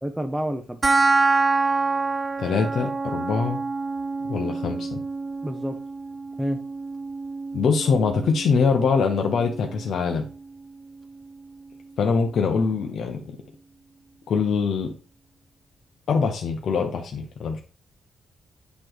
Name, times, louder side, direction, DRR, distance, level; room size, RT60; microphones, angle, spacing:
voice 1, 0.0-0.8 5.4-5.8 6.4-6.6, equal, 10° right, 4 dB, 0.6 m, -28 dB
sound 1, 0.8-11.8, right 3 dB, 30° right, 0.3 m, -27 dB
voice 2, 2.4-3.6 4.3-5.0 7.5-10.3 12.0-13.4 14.3-14.9 16.1-17.6, left 5 dB, 70° left, 3 dB, 0.8 m, -23 dB
8.3 x 3.1 x 4.7 m, 0.39 s
cardioid pair, 90°, 0 cm